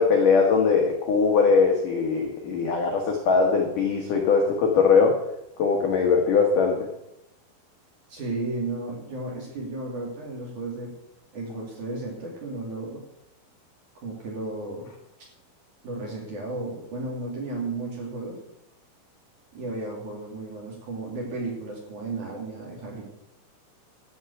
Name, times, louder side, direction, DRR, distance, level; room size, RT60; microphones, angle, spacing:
voice 1, 0.0-5.2 5.6-6.8, left 5 dB, 75° left, 1 dB, 1.9 m, -21 dB
voice 2, 8.1-10.9 11.3-13.0 14.0-14.9 15.8-18.4 19.5-23.0, right 2 dB, 45° right, -2 dB, 3.2 m, -33 dB
14.0 x 5.9 x 8.2 m, 0.84 s
omnidirectional pair, 6.0 m